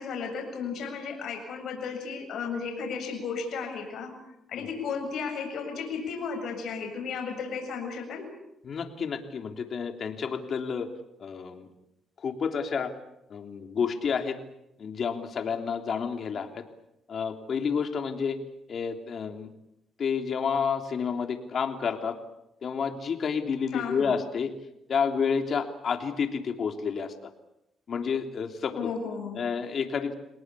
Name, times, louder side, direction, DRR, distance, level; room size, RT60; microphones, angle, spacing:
voice 1, 0.0-4.1 4.5-8.3 23.7-24.2 28.7-29.4, left 5 dB, 70° left, 3 dB, 7.5 m, -34 dB
voice 2, 8.6-10.9 11.2-11.7 12.2-12.9 13.3-14.4 14.8-16.6 17.1-18.4 18.7-19.5 20.0-22.2 22.6-24.5 24.9-27.1 27.9-28.7 29.3-30.1, left 6 dB, 55° left, 6 dB, 3.3 m, -30 dB
28.5 x 19.5 x 8.5 m, 0.83 s
cardioid pair, 90°, 0 cm